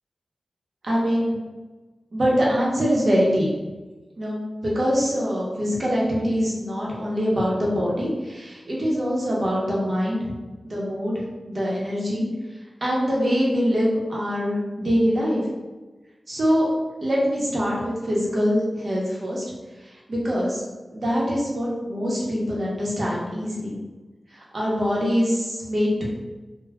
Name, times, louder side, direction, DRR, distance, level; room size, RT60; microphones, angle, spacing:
voice 1, 0.8-1.4 2.1-3.5 4.2-10.2 10.6-11.2 11.5-12.3 12.8-15.4 16.3-16.7 17.0-19.4 20.1-20.6 20.9-23.8 24.5-26.0, equal, 60° right, -5 dB, 0.9 m, -23 dB
3.5 x 2.2 x 2.2 m, 1.2 s
cardioid pair, 40°, 0 cm